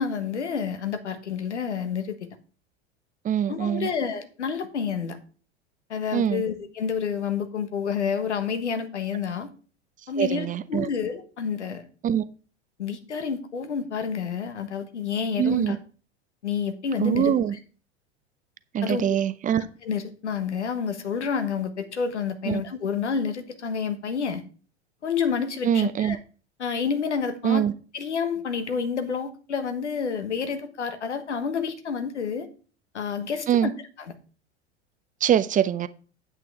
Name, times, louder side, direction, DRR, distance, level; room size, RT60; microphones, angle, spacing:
voice 1, 0.0-2.3 3.5-5.2 5.9-9.5 10.1-11.9 12.8-15.8 16.4-17.3 18.8-19.1 19.8-24.4 25.0-26.2 26.6-27.6 27.9-32.5 32.9-33.7 34.0-34.1, left 6 dB, 85° left, 8 dB, 1.4 m, -29 dB
voice 2, 3.2-3.9 6.1-6.4 10.2-10.9 12.0-12.2 15.4-15.8 17.0-17.5 18.7-19.6 22.5-22.6 25.6-26.2 27.4-27.7 33.5-33.7 35.2-35.9, right 9 dB, 25° right, 15 dB, 0.6 m, -23 dB
9.1 x 8.3 x 3.5 m, 0.38 s
hypercardioid pair, 90°, 34 cm